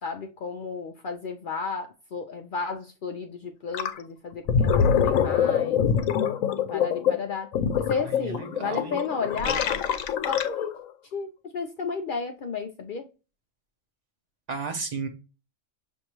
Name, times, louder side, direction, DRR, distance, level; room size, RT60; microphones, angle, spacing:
voice 1, 0.0-5.8 6.7-7.5 7.8-9.8 10.3-10.7 11.1-13.1, left 5 dB, 65° left, 0.5 m, -33 dB
Gurgling, 3.7-4.0 4.3-10.8, left 7 dB, 85° left, 1.0 m, -24 dB
voice 2, 8.2-9.0 14.5-15.1, right 4 dB, 35° right, 0.8 m, -33 dB
6.4 x 2.6 x 2.9 m
omnidirectional pair, 1.4 m